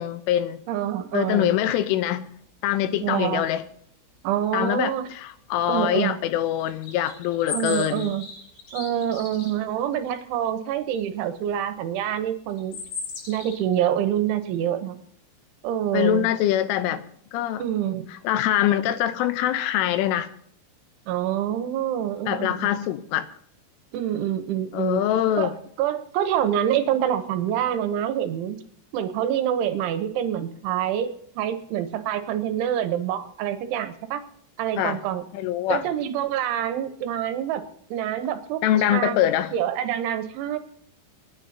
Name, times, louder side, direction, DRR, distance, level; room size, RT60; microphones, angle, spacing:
voice 1, 0.0-0.6 1.1-2.3 2.6-3.6 4.5-8.1 15.9-17.0 17.3-17.6 18.1-20.3 22.3-23.3 24.7-25.5 34.8-35.0 35.3-35.8 38.6-39.5, left 12 dB, 80° left, 3.1 m, -24 dB
voice 2, 0.7-1.6 3.0-3.4 4.2-5.1 5.7-6.2 7.5-8.3 8.7-12.8 13.3-15.0 15.6-16.3 17.6-18.1 21.1-22.7 23.9-25.0 25.4-25.5 25.8-28.6 28.9-34.2 34.6-35.2 35.7-37.6 37.9-38.6 38.9-39.2 39.5-40.6, right 10 dB, 75° right, 3.2 m, -26 dB
sound 1, 6.6-9.5 12.5-13.6, left 4 dB, 65° left, 7.0 m, -36 dB
29.0 x 10.0 x 2.8 m
omnidirectional pair, 5.9 m